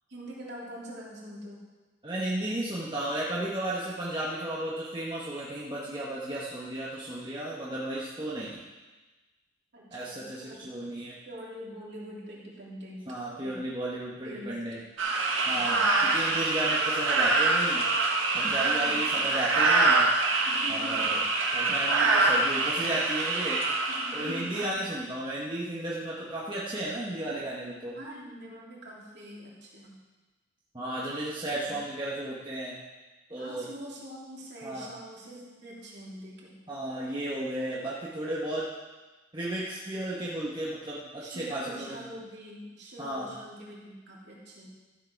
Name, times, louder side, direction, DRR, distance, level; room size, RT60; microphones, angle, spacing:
voice 1, 0.1-1.6 9.7-10.6 11.2-13.1 13.4-13.6 14.2-14.6 15.4-16.3 18.6-19.2 20.4-21.2 23.9-24.8 27.9-30.0 33.4-36.6 41.2-44.7, equal, 55° right, -5 dB, 3.2 m, -44 dB
voice 2, 2.0-8.6 9.9-11.1 13.1-14.8 15.5-15.8 16.1-17.9 18.3-20.1 20.7-21.0 21.5-23.6 24.1-28.0 30.7-32.8 33.3-33.7 34.6-34.9 36.7-38.6 39.3-42.1 43.0-43.3, right 1 dB, 20° right, -7 dB, 1.4 m, -34 dB
sound 1, 15.0-24.7, right 3 dB, 70° right, 1.6 m, -25 dB
13.5 x 7.9 x 4.7 m, 1.2 s
head